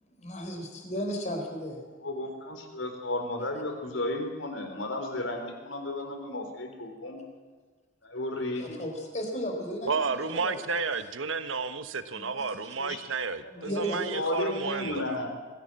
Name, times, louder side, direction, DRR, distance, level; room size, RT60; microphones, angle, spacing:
voice 1, 0.1-1.8 8.6-10.8 12.1-12.7 13.6-14.2, equal, 35° left, 3 dB, 4.1 m, -35 dB
voice 2, 2.0-7.2 8.0-8.8 12.8-13.0 13.4-15.3, left 1 dB, 70° left, 5 dB, 3.8 m, -34 dB
voice 3, 9.8-15.3, right 4 dB, 75° right, 11 dB, 1.2 m, -32 dB
22.0 x 15.5 x 7.7 m, 1.4 s
head